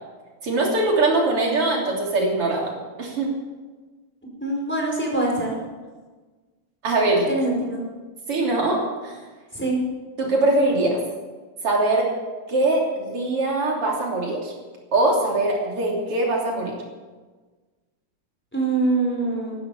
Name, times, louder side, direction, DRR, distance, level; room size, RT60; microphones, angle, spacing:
voice 1, 0.4-2.7 3.0-3.3 6.8-7.3 8.3-9.2 10.2-11.0 11.6-12.1 12.5-14.5 14.9-16.8, right 2 dB, 90° right, -1 dB, 4.1 m, -22 dB
voice 2, 4.4-5.6 7.3-7.8 9.5-9.8 18.5-19.6, right 2 dB, 5° left, -2 dB, 4.7 m, -24 dB
14.5 x 12.5 x 7.0 m, 1.3 s
omnidirectional pair, 2.4 m